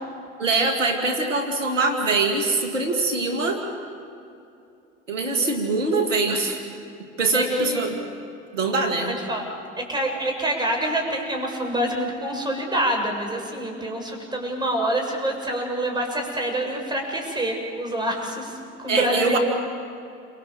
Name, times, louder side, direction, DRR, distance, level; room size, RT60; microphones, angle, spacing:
voice 1, 0.4-3.6 5.1-6.6 7.2-8.0 8.5-9.2 18.9-19.4, right 3 dB, 90° right, 4 dB, 2.5 m, -23 dB
voice 2, 7.3-7.8 9.1-9.4 9.8-19.4, right 1 dB, 10° right, 0 dB, 7.5 m, -26 dB
29.5 x 25.5 x 7.5 m, 2.7 s
hypercardioid pair, 80°, 37 cm